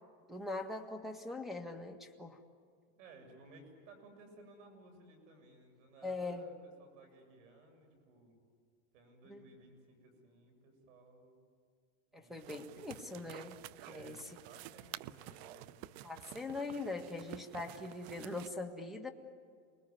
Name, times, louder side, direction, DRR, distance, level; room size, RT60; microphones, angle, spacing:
voice 1, 0.3-2.4 6.0-6.4 9.3-9.4 12.1-14.2 16.0-19.1, left 3 dB, ahead, 6 dB, 1.8 m, -42 dB
voice 2, 3.0-8.4 8.9-11.3 12.1-13.0 13.8-15.9, right 3 dB, 75° right, 4 dB, 8.0 m, -58 dB
sound 1, 12.4-18.5, right 15 dB, 55° right, 0.6 m, -51 dB
29.5 x 20.5 x 9.6 m, 2.1 s
supercardioid pair, 150°, 38 cm